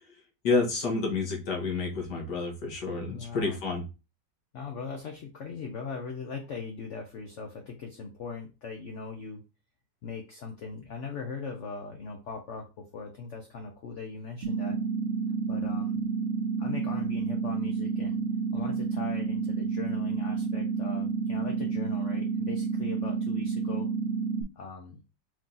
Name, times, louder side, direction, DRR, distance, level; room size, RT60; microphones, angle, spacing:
voice 1, 0.4-3.9, left 4 dB, 75° left, 1 dB, 2.0 m, -29 dB
voice 2, 3.1-3.6 4.5-9.4 10.0-14.8 15.5-16.0 16.6-18.2 18.5-23.9 24.6-25.0, left 4 dB, 55° left, 3 dB, 0.9 m, -40 dB
sound 1, 14.4-24.4, right 5 dB, 70° right, 0.6 m, -30 dB
4.9 x 2.8 x 3.8 m, 0.29 s
omnidirectional pair, 1.9 m